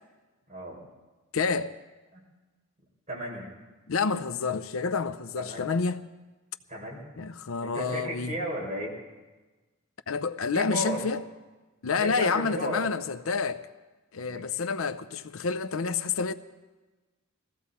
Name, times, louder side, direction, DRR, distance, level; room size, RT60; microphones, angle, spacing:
voice 1, 0.5-0.9 2.1-2.2 3.1-3.5 5.4-5.7 6.7-7.1 7.6-8.9 10.5-11.0 11.9-12.8 14.2-14.5, equal, 35° right, 4.9 m, -34 dB
voice 2, 1.3-1.7 3.9-6.0 7.2-8.3 10.1-11.2 11.8-13.7 14.1-16.3, left 5 dB, 75° left, 0.6 m, -28 dB
21.0 x 15.5 x 4.2 m
head